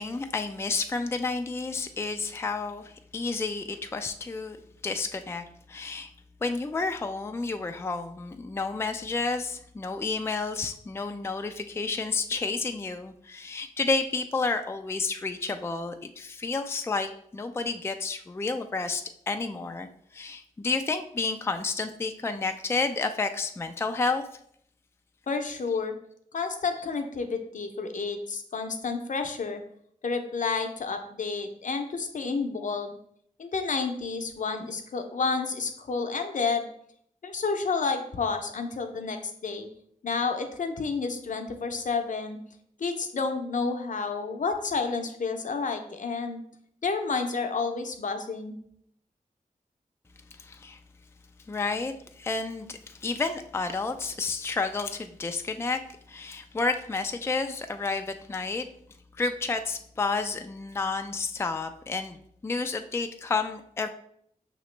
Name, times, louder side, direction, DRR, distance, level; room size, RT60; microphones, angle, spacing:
voice 1, 0.0-4.6 4.8-6.1 6.4-24.2 50.4-50.8 51.5-55.8 56.1-58.7 59.2-63.9, left 3 dB, 20° left, 7 dB, 0.3 m, -30 dB
voice 2, 25.3-25.9 26.3-29.6 30.0-33.0 33.4-36.7 37.2-39.7 40.0-42.4 42.8-46.4 46.8-48.6, left 4 dB, 65° left, 6 dB, 0.6 m, -30 dB
5.6 x 3.0 x 3.2 m, 0.68 s
cardioid pair, 65°, 14 cm